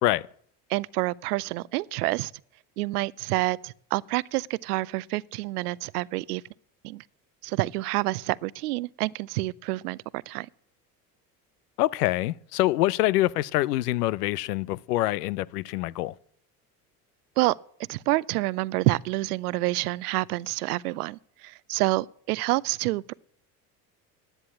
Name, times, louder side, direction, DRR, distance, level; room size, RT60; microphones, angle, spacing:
voice 1, 0.7-2.3 2.8-6.4 6.8-7.0 7.4-10.5 17.4-17.5 17.9-23.1, right 20 dB, 80° right, 0.6 m, -28 dB
voice 2, 11.8-16.1, left 16 dB, 85° left, 0.6 m, -25 dB
10.5 x 9.9 x 8.4 m
hypercardioid pair, 70°, 46 cm